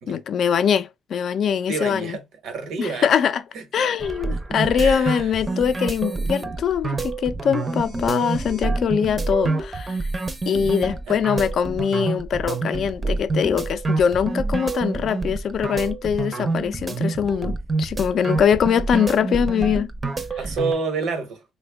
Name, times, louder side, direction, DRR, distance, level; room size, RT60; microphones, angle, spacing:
voice 1, 0.1-2.2 2.8-3.4 3.7-10.0 10.5-17.5 17.8-19.9, left 7 dB, 60° left, 0.4 m, -22 dB
voice 2, 1.7-3.1 3.5-3.6 4.3-4.4 4.7-5.3 11.1-11.2 12.7-12.8 20.4-21.4, right 4 dB, 80° right, 1.0 m, -29 dB
sound 1, 4.0-20.7, right 3 dB, 30° right, 0.5 m, -27 dB
3.4 x 2.2 x 3.4 m
cardioid pair, 90°, 0 cm